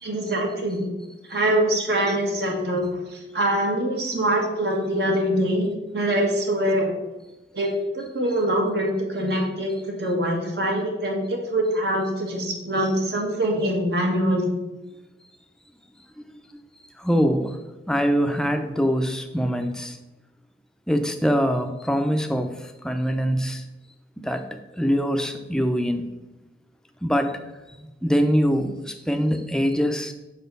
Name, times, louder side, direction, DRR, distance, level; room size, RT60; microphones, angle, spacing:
voice 1, 0.0-0.9 1.3-2.8 3.1-5.7 5.9-7.0 7.5-14.5, right 1 dB, 65° right, 0 dB, 1.5 m, -24 dB
voice 2, 17.0-17.6 17.9-20.0 20.9-22.5 22.8-23.6 24.2-26.0 27.0-27.4 27.7-30.1, equal, 5° left, 5 dB, 0.5 m, -23 dB
6.2 x 4.1 x 5.3 m, 1.0 s
head